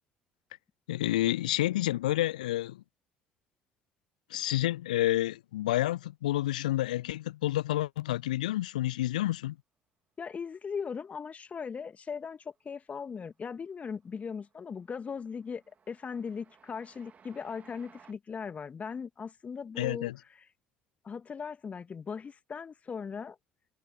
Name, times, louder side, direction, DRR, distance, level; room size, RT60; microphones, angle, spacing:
voice 1, 0.9-2.8 4.3-9.6 19.8-20.2, left 15 dB, 75° left, 0.3 m, -29 dB
voice 2, 10.2-20.1 21.0-23.4, left 6 dB, 35° left, 2.4 m, -39 dB
Train, 12.4-12.9 13.2-18.1, right 6 dB, 35° right, 3.1 m, -61 dB
figure-of-eight pair, 55°, 4 cm